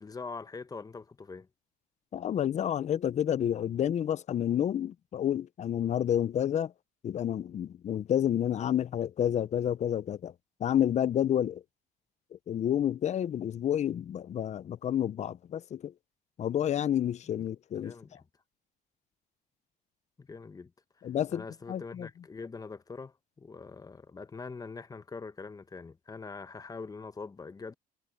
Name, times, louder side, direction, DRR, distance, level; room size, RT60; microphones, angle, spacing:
voice 1, 0.0-1.5 17.8-18.2 20.2-20.7 21.3-27.7, left 4 dB, 20° left, 1.0 m, -43 dB
voice 2, 2.1-6.7 7.0-10.3 10.6-11.6 12.5-15.9 16.4-17.9 21.0-22.1, left 10 dB, 45° left, 0.6 m, -29 dB
cardioid pair, 110°, 17 cm